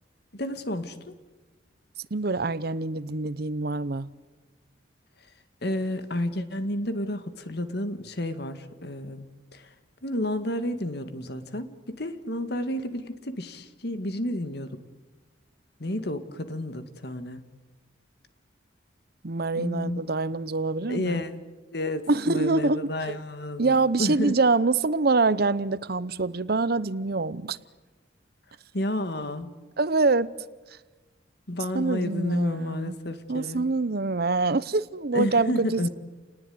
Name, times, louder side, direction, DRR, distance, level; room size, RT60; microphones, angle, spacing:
voice 1, 0.3-1.1 5.6-9.7 10.0-14.8 15.8-17.4 19.6-20.0 20.9-21.3 21.7-24.3 28.7-29.5 31.5-33.7 35.1-35.9, left 1 dB, 55° left, 2.0 m, -31 dB
voice 2, 2.1-4.1 19.2-21.2 22.1-23.2 23.6-27.6 29.8-30.3 31.7-32.9 33.3-35.9, right 3 dB, 55° right, 0.8 m, -25 dB
29.5 x 19.5 x 9.6 m
head